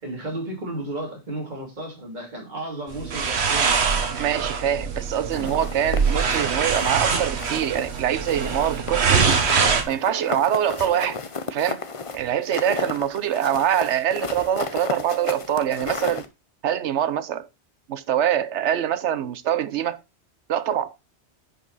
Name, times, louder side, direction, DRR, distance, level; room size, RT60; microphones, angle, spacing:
voice 1, 0.0-3.8, right 1 dB, 40° right, 3.0 m, -33 dB
sound 1, 2.9-9.8, right 5 dB, 70° right, 1.4 m, -23 dB
voice 2, 4.2-9.3 9.9-11.2 11.5-11.8 12.1-16.3 16.6-17.5 17.9-20.0 20.5-20.9, right 10 dB, 90° right, 1.0 m, -24 dB
sound 2, 5.3-7.1 7.4-8.0 8.3-16.3, left 4 dB, 35° left, 0.7 m, -33 dB
10.0 x 5.4 x 4.0 m
omnidirectional pair, 1.1 m